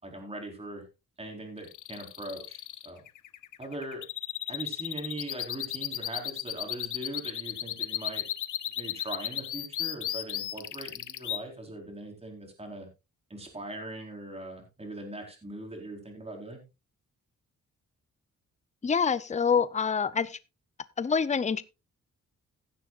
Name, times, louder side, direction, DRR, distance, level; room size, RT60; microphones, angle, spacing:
voice 1, 0.0-0.8 1.2-3.0 3.6-4.0 4.5-8.3 8.8-12.9 13.3-16.6, right 1 dB, 20° right, 4.4 m, -40 dB
sound 1, 1.6-11.4, left 11 dB, 85° left, 0.8 m, -35 dB
voice 2, 18.8-20.4 21.0-21.6, left 6 dB, 25° left, 0.6 m, -26 dB
16.5 x 10.0 x 2.5 m
cardioid pair, 110°, 30 cm